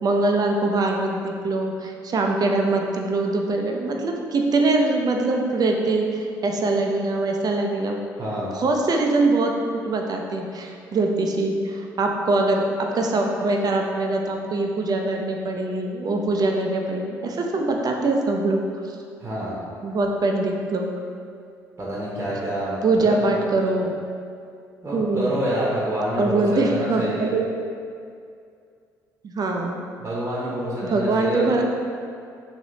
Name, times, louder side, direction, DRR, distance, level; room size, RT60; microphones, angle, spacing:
voice 1, 0.0-8.0 8.5-9.5 9.8-18.6 19.8-20.9 22.8-23.9 24.9-25.3 26.2-27.5 29.2-29.8 30.8-31.6, right 2 dB, 40° right, 2 dB, 0.5 m, -23 dB
voice 2, 8.2-8.5 19.2-19.6 21.8-23.2 24.8-27.3 30.0-31.5, right 1 dB, 25° right, -6 dB, 1.0 m, -27 dB
3.1 x 3.0 x 3.9 m, 2.3 s
hypercardioid pair, 50°, 10 cm